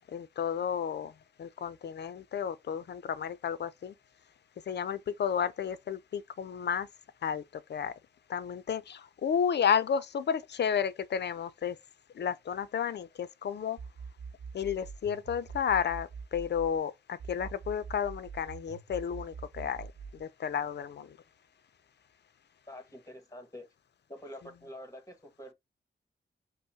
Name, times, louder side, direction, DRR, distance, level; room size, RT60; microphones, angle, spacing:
voice 1, 0.1-1.1 1.4-3.9 4.7-6.9 7.2-8.0 8.3-11.8 12.1-13.8 14.5-21.2, left 7 dB, 65° left, 0.5 m, -32 dB
sound 1, 13.8-16.8 17.2-20.2, right 5 dB, 50° right, 0.5 m, -44 dB
voice 2, 22.7-23.7 24.1-25.5, equal, 15° left, 1.3 m, -46 dB
5.3 x 2.1 x 2.7 m
cardioid pair, 75°, 19 cm